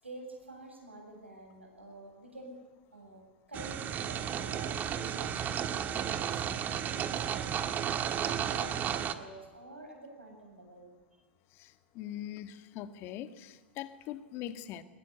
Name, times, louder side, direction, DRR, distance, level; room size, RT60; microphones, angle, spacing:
voice 1, 0.0-2.6 2.9-3.2 3.5-10.9, right 1 dB, 90° right, 1 dB, 7.8 m, -48 dB
sound 1, 3.5-9.1, right 9 dB, 30° right, 1.5 m, -33 dB
voice 2, 11.6-14.8, left 11 dB, 40° left, 11 dB, 1.7 m, -42 dB
21.5 x 21.0 x 8.3 m, 1.3 s
figure-of-eight pair, 95°, 6 cm